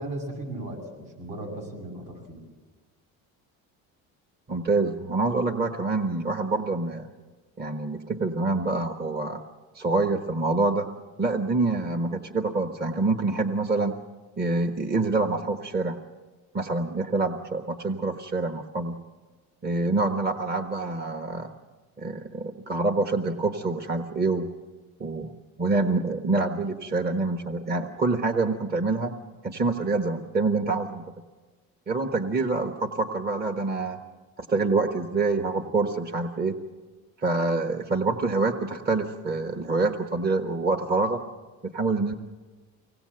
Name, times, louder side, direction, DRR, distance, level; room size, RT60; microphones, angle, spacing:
voice 1, 0.0-2.4, right 1 dB, 65° right, 1 dB, 7.9 m, -36 dB
voice 2, 4.5-7.1 7.6-9.4 9.7-10.9 11.2-13.9 14.4-16.0 16.5-19.0 19.6-21.5 22.0-24.5 25.0-29.2 29.4-31.1 31.9-34.0 34.4-36.6 37.2-41.2 41.6-42.1, right 3 dB, 25° right, 5 dB, 1.3 m, -26 dB
24.0 x 18.5 x 7.8 m, 1.3 s
cardioid pair, 110°, 36 cm